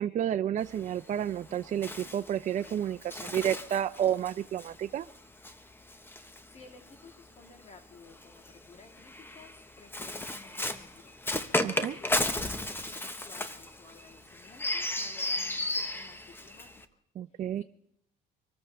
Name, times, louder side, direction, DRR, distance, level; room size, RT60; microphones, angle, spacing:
voice 1, 0.0-5.0 11.6-12.0 17.2-17.6, right 10 dB, 45° right, 9 dB, 0.5 m, -31 dB
Bird, 0.6-7.1 8.1-16.9, left 1 dB, 15° left, 1.2 m, -35 dB
voice 2, 6.5-11.4 11.7-17.0 17.3-17.6, left 4 dB, 40° left, 3 dB, 3.3 m, -55 dB
25.5 x 14.0 x 3.4 m, 0.75 s
cardioid pair, 110°, 17 cm